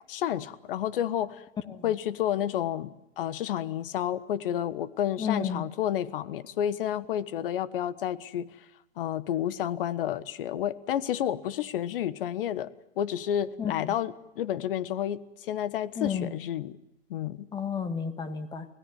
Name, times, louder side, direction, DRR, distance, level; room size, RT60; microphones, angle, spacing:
voice 1, 0.1-1.4 1.8-8.5 9.0-12.7 13.0-16.8 17.1-17.5, left 11 dB, 45° left, 16 dB, 1.4 m, -30 dB
voice 2, 5.2-5.6 13.6-13.7 16.0-16.3 17.5-18.7, left 7 dB, 10° left, 9 dB, 1.7 m, -31 dB
25.5 x 17.5 x 9.4 m, 0.92 s
hypercardioid pair, 145°, 36 cm